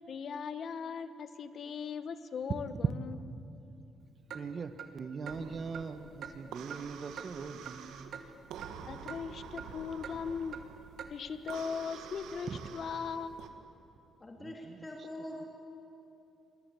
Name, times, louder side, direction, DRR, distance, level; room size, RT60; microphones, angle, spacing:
voice 1, 0.1-3.2 8.9-10.6 11.1-13.4, left 6 dB, 55° left, 11 dB, 1.4 m, -39 dB
voice 2, 4.3-8.2 12.5-12.6 14.4-14.9, right 5 dB, 45° right, 10 dB, 1.4 m, -42 dB
Clock, 4.3-4.4 4.8-4.9 5.3-5.4 5.7-5.9 6.2-6.3 6.7-6.8 7.2-7.3 7.7-7.8 8.1-8.3 8.6-8.7 9.1-9.2 9.6-9.7 10.0-10.2 10.5-10.6 11.0-11.1 11.5-11.6, right 8 dB, 70° right, 2.1 m, -43 dB
sound 1, 5.2-13.5, right 7 dB, 90° right, 1.9 m, -48 dB
voice 3, 14.2-15.4, left 1 dB, 25° left, 1 dB, 2.9 m, -44 dB
27.5 x 22.0 x 8.5 m, 2.9 s
cardioid pair, 90°, 0 cm